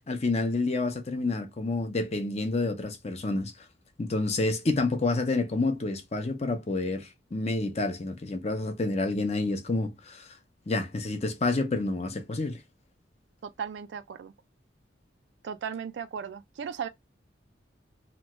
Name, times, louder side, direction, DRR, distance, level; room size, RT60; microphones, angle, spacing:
voice 1, 0.1-3.5 4.0-10.3 10.7-12.6, left 2 dB, 35° left, 0.6 m, -29 dB
voice 2, 13.4-14.3 15.4-16.9, right 7 dB, 70° right, 0.3 m, -36 dB
3.0 x 2.2 x 3.0 m
head